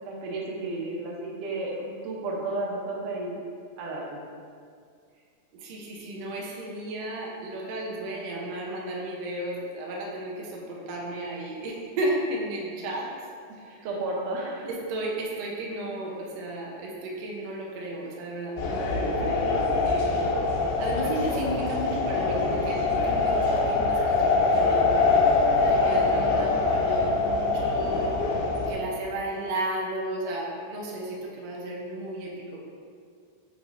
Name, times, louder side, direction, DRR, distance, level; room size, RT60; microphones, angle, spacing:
voice 1, 0.0-3.4 3.8-4.2 13.8-14.8, right 2 dB, 90° right, -2 dB, 2.4 m, -32 dB
voice 2, 5.6-13.1 14.9-20.3 20.8-25.3 25.7-28.2 28.7-32.3, right 1 dB, 70° right, -3 dB, 1.9 m, -34 dB
sound 1, 18.6-28.7, left 3 dB, 85° left, 2.3 m, -24 dB
8.3 x 5.1 x 2.6 m, 2.2 s
omnidirectional pair, 3.5 m